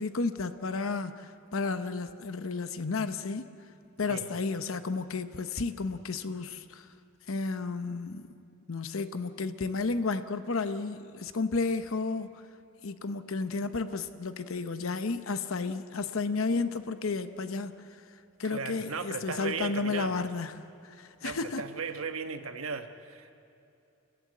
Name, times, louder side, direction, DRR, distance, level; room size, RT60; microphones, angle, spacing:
voice 1, 0.0-3.4 4.0-6.9 7.3-8.2 8.7-12.4 12.8-17.7 18.4-21.6, left 4 dB, 75° left, 11 dB, 0.8 m, -32 dB
voice 2, 18.4-20.2 21.2-23.3, right 5 dB, 85° right, 7 dB, 1.2 m, -36 dB
29.5 x 15.5 x 7.6 m, 2.7 s
head